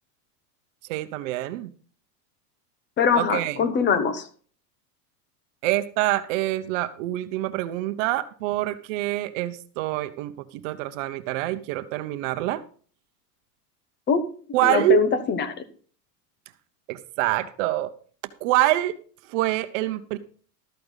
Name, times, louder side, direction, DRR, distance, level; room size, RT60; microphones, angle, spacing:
voice 1, 0.9-1.7 3.1-3.6 5.6-10.3 10.6-12.6 14.5-15.0 16.9-17.9 18.4-19.0 19.3-20.2, right 15 dB, 50° right, 1.1 m, -25 dB
voice 2, 3.0-4.2 14.1-14.2 14.6-15.5, left 6 dB, 20° left, 1.2 m, -22 dB
13.0 x 8.6 x 4.0 m
supercardioid pair, 145°, 48 cm